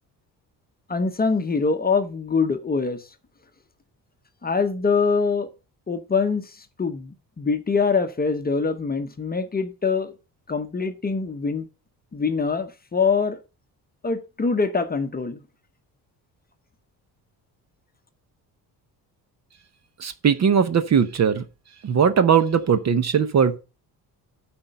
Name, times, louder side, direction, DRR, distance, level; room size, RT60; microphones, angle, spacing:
voice 1, 0.9-3.1 4.4-5.5 5.9-10.1 10.5-11.7 12.1-13.4 14.0-15.4, left 4 dB, 25° left, 0.8 m, -24 dB
voice 2, 20.0-21.4 21.8-23.6, right 7 dB, 40° right, 0.8 m, -19 dB
8.7 x 4.4 x 5.3 m
cardioid pair, 100°, 40 cm